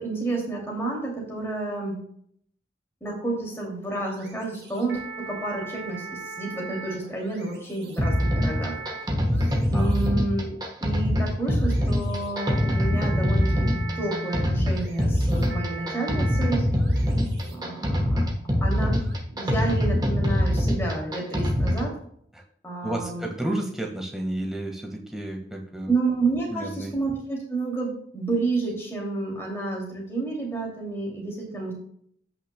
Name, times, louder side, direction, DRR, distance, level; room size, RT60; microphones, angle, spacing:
voice 1, 0.0-2.0 3.0-8.8 9.4-13.7 14.0-16.7 17.5-18.3 18.6-19.0 19.4-22.0 22.6-23.3 25.9-31.7, right 3 dB, 15° left, -2 dB, 2.6 m, -30 dB
sound 1, 3.4-19.2, right 4 dB, 75° right, 2.2 m, -41 dB
sound 2, 8.0-21.9, equal, 20° right, 1.2 m, -24 dB
Bass guitar, 12.7-19.0, right 1 dB, 70° left, 2.9 m, -39 dB
voice 2, 22.8-25.9 26.5-26.9, right 1 dB, 5° right, 0 dB, 1.6 m, -31 dB
15.5 x 6.0 x 2.2 m, 0.66 s
head